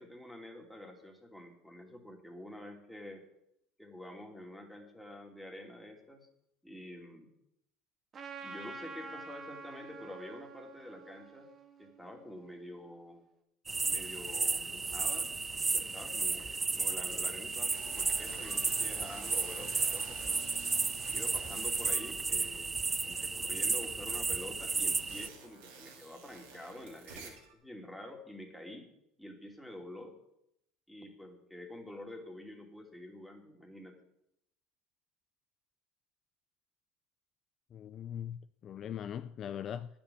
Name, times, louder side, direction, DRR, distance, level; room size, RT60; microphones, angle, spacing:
voice 1, 0.0-3.2 3.8-6.3 6.6-7.3 8.4-11.5 11.8-13.2 13.9-15.3 15.7-20.5 21.1-28.9 29.2-30.2 30.9-34.0, left 1 dB, 5° left, 2.6 m, -48 dB
Trumpet, 8.1-12.8, right 4 dB, 35° right, 1.8 m, -48 dB
sound 1, 13.7-25.3, right 4 dB, 20° right, 0.4 m, -33 dB
sound 2, 17.7-22.7 23.1-27.5, right 5 dB, 85° right, 2.8 m, -51 dB
voice 2, 37.7-39.9, left 9 dB, 45° left, 0.5 m, -40 dB
10.0 x 7.2 x 8.5 m
supercardioid pair, 100°, 0 cm